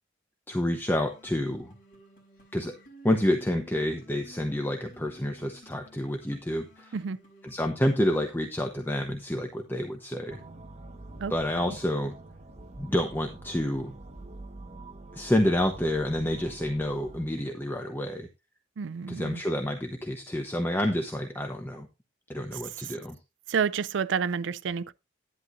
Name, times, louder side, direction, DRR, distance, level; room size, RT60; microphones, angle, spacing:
voice 1, 0.5-1.7 2.5-2.7 3.0-6.9 7.4-10.4 11.3-12.1 12.8-13.9 15.1-18.3 19.1-21.9 22.3-23.2, left 1 dB, 10° left, 0.9 m, -28 dB
sound 1, 1.0-7.7, equal, 50° left, 4.7 m, -54 dB
sound 2, 10.3-17.2, right 2 dB, 35° right, 1.3 m, -46 dB
voice 2, 18.8-19.4 22.5-22.9 23.5-24.9, right 6 dB, 80° right, 0.4 m, -30 dB
11.0 x 10.0 x 2.5 m
head